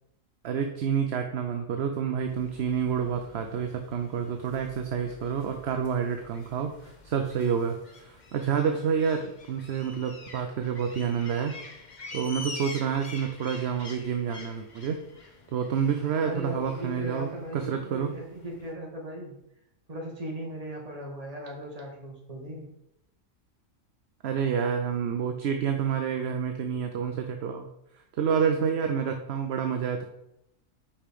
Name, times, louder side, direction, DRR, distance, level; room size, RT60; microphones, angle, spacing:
voice 1, 0.4-6.7 7.0-11.5 12.1-15.0 15.5-18.1 24.2-27.7 28.2-30.0, right 7 dB, 60° right, 5 dB, 0.8 m, -28 dB
sound 1, 2.3-18.7, left 3 dB, 40° left, 0.9 m, -47 dB
voice 2, 16.2-19.3 19.9-22.7, right 1 dB, 30° right, -1 dB, 1.6 m, -38 dB
5.6 x 5.0 x 5.0 m, 0.83 s
omnidirectional pair, 1.4 m